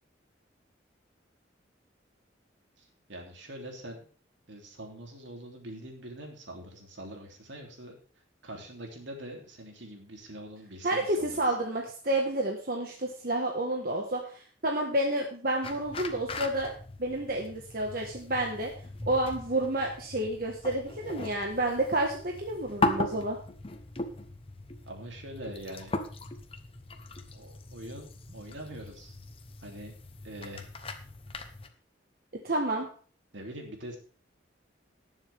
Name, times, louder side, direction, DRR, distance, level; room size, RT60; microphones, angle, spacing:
voice 1, 2.8-4.1 4.5-8.0 8.4-11.5 24.9-25.9 27.3-29.2 29.6-29.9 30.2-30.7 33.3-34.0, right 1 dB, 75° right, 2 dB, 3.1 m, -44 dB
voice 2, 10.8-16.7 17.0-18.7 19.1-23.4 32.4-32.9, right 1 dB, 50° right, 1 dB, 1.5 m, -30 dB
sound 1, 15.6-31.7, left 2 dB, 30° left, 0.9 m, -38 dB
18.5 x 7.2 x 3.5 m, 0.41 s
head